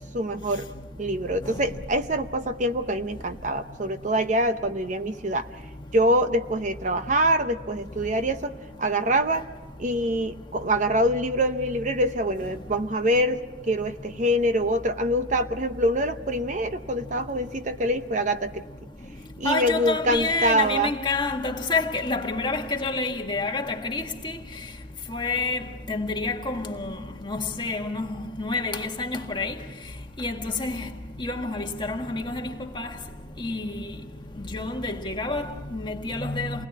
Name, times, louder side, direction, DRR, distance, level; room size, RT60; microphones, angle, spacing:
voice 1, 0.1-0.6 1.0-5.5 5.9-9.5 9.8-13.4 13.7-18.6 19.4-20.9, right 1 dB, 40° right, 0.8 m, -25 dB
voice 2, 19.4-24.4 25.1-29.5 30.2-30.9 31.2-32.9 33.4-33.8 34.4-36.7, left 3 dB, 25° left, 1.6 m, -28 dB
29.0 x 20.5 x 8.5 m
head